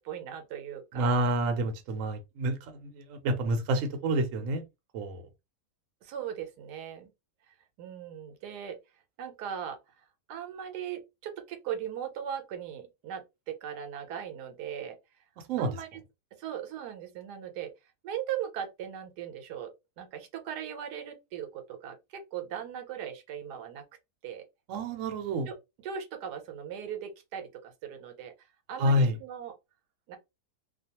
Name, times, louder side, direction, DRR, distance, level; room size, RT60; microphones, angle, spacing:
voice 1, 0.0-1.2 6.0-7.1 7.5-8.8 9.2-15.0 15.6-16.0 16.3-17.7 18.0-23.8 24.2-24.5 25.5-25.6 25.8-28.3 28.7-29.5 30.1-30.2, right 9 dB, 85° right, 1.2 m, -39 dB
voice 2, 0.9-4.6 4.9-5.2 15.4-15.8 24.7-25.5 28.8-29.2, right 1 dB, 65° right, 0.9 m, -28 dB
2.5 x 2.3 x 2.8 m
omnidirectional pair, 1.7 m